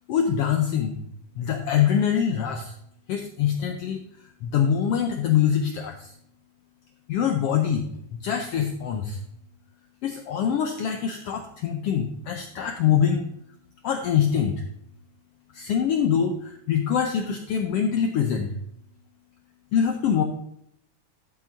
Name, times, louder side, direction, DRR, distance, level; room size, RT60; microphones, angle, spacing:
voice 1, 0.1-1.0 1.4-2.7 3.1-4.0 4.4-6.1 7.1-7.8 8.1-9.2 10.0-13.3 13.8-14.6 15.5-18.5 19.7-20.2, left 8 dB, 85° left, 4 dB, 1.3 m, -24 dB
12.0 x 8.2 x 2.6 m, 0.72 s
omnidirectional pair, 3.6 m